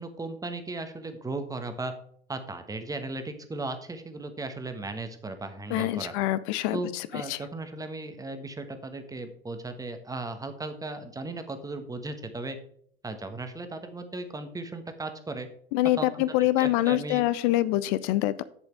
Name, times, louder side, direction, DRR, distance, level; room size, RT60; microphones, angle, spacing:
voice 1, 0.0-1.9 2.3-6.1 6.7-12.6 13.0-15.5 16.0-17.2, right 2 dB, 10° right, 7 dB, 1.3 m, -36 dB
voice 2, 5.7-7.4 15.7-18.4, left 16 dB, 50° left, 16 dB, 0.6 m, -25 dB
8.0 x 7.1 x 4.5 m, 0.63 s
hypercardioid pair, 90°, 30 cm